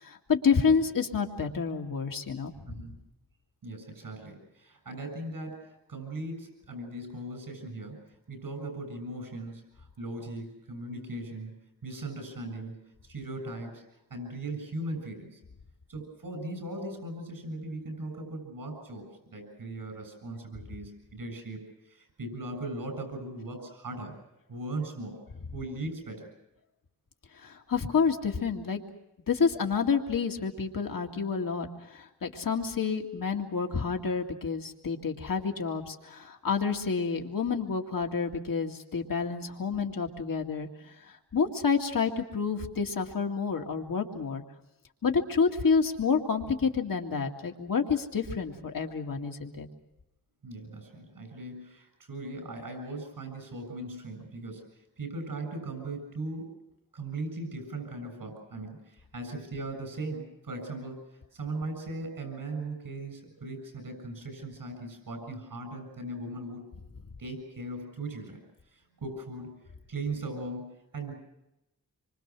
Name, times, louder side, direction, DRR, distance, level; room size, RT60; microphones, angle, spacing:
voice 1, 0.0-2.5 27.4-28.8 29.3-40.7 41.0-44.4 45.0-49.7, left 5 dB, 80° left, 2 dB, 2.2 m, -29 dB
voice 2, 3.6-11.5 11.8-12.8 13.0-13.8 14.1-15.4 15.9-24.2 24.5-25.2 25.5-26.3 50.4-56.5 56.9-66.7 67.2-68.4 68.7-71.1, right 2 dB, 90° right, 6 dB, 7.2 m, -39 dB
27.0 x 24.5 x 6.1 m, 0.88 s
wide cardioid pair, 100°, 33 cm